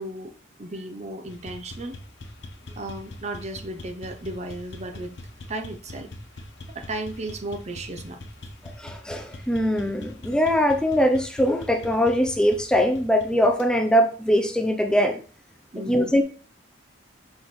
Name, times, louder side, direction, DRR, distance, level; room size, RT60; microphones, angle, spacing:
voice 1, 0.0-2.0 2.8-5.2 5.5-6.1 6.7-8.2 15.7-16.2, right 1 dB, 35° right, 0.7 m, -35 dB
sound 1, 1.3-13.7, left 1 dB, 70° left, 1.0 m, -42 dB
voice 2, 8.8-15.2 15.9-16.2, equal, 5° left, 0.5 m, -22 dB
6.2 x 6.1 x 3.1 m
head